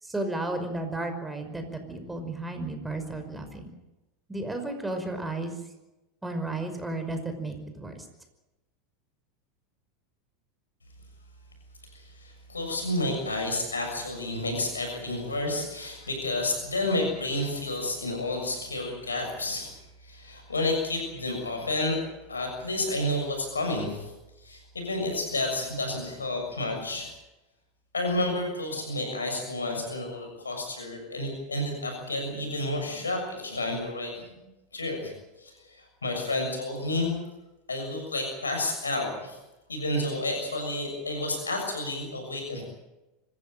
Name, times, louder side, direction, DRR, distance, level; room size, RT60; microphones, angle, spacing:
voice 1, 0.0-3.7 4.3-5.6 6.2-8.1, right 2 dB, 10° right, 6 dB, 5.4 m, -33 dB
voice 2, 11.9-19.8 20.0-22.0 22.3-24.1 24.4-27.1 27.9-34.5 34.7-35.1 35.4-37.1 37.7-39.4 39.7-42.6, left 2 dB, 85° left, 3 dB, 6.8 m, -30 dB
25.5 x 15.5 x 9.0 m, 1.0 s
figure-of-eight pair, 85°, 0 cm